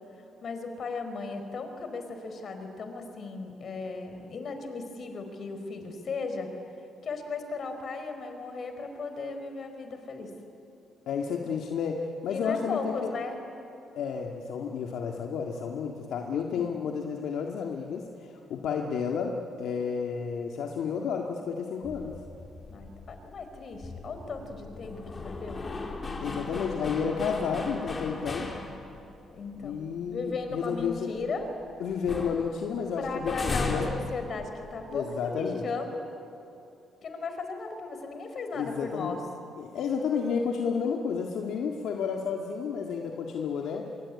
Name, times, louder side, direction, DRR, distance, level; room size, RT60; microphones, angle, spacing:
voice 1, 0.4-6.6 7.0-10.3 12.3-13.4 16.5-16.7 22.7-25.6 29.3-31.5 33.0-36.1 37.0-39.2, left 4 dB, 55° left, 6 dB, 4.4 m, -36 dB
voice 2, 11.1-13.1 13.9-22.2 26.2-28.5 29.6-31.1 31.8-33.9 34.9-35.7 38.5-39.2 39.6-43.9, left 6 dB, 75° left, 2 dB, 1.9 m, -31 dB
sound 1, 21.8-29.2 29.6-29.7 30.1-31.6 31.9-34.9, left 3 dB, 30° left, 3.9 m, -37 dB
25.5 x 23.0 x 9.7 m, 2.8 s
cardioid pair, 90°, 0 cm